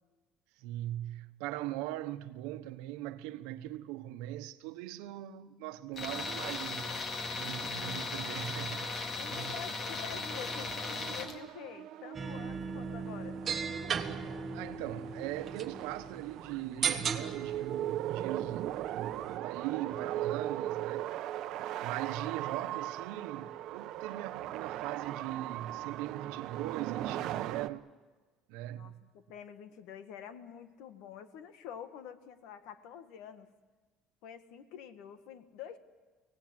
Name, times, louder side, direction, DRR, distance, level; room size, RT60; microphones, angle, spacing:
voice 1, 0.6-7.0 7.3-9.6 14.5-21.1 21.8-27.9 28.5-29.0, right 14 dB, 90° right, 1.1 m, -40 dB
Tools, 6.0-11.4, left 3 dB, 35° left, 2.2 m, -37 dB
voice 2, 9.1-13.6 28.7-33.5 34.2-35.8, left 9 dB, 75° left, 1.7 m, -47 dB
sound 1, 10.1-27.7, right 13 dB, 60° right, 0.9 m, -39 dB
sound 2, 12.1-19.4, right 6 dB, 30° right, 1.6 m, -38 dB
24.5 x 18.0 x 9.7 m
cardioid pair, 140°, 0 cm